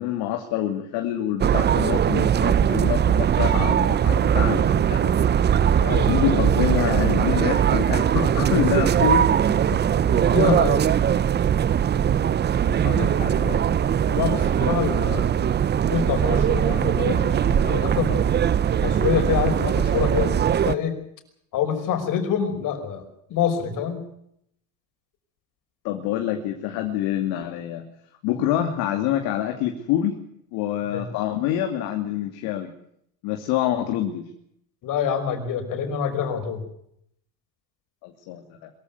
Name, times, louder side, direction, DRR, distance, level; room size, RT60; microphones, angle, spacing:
voice 1, 0.0-5.2 6.0-9.3 12.1-12.2 12.7-13.6 25.8-27.8 28.2-30.2 30.5-32.7 33.2-34.2 38.0-38.7, left 11 dB, 65° left, 4 dB, 2.7 m, -26 dB
sound 1, 1.4-20.7, right 9 dB, 25° right, 0.8 m, -20 dB
voice 2, 5.8-6.2 10.0-10.9 13.0-13.1 14.0-15.2 15.9-18.4 18.8-21.0 21.5-23.0 23.3-24.0 30.8-31.0 34.8-36.6, left 8 dB, 50° left, 8 dB, 5.5 m, -26 dB
22.5 x 15.0 x 9.5 m, 0.72 s
supercardioid pair, 110°, 40 cm